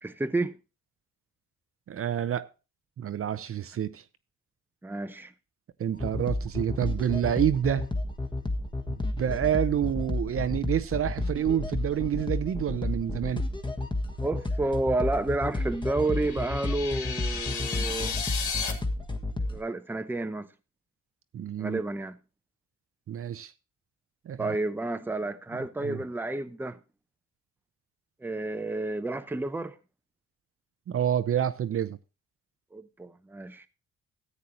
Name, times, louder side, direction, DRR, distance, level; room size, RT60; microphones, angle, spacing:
voice 1, 0.0-0.6 4.8-5.3 14.2-18.2 19.5-20.5 21.6-22.2 24.4-26.8 28.2-29.8 32.7-33.7, right 2 dB, 5° right, 0.7 m, -30 dB
voice 2, 1.9-2.5 3.0-4.0 5.8-7.9 8.9-13.4 21.3-21.8 23.1-23.5 24.3-24.6 25.8-26.0 30.9-32.0, right 10 dB, 50° right, 0.7 m, -28 dB
sound 1, 5.9-19.6, left 2 dB, 15° left, 1.4 m, -31 dB
sound 2, 15.9-18.7, left 6 dB, 80° left, 2.3 m, -34 dB
14.0 x 8.3 x 3.0 m
cardioid pair, 90°, 30 cm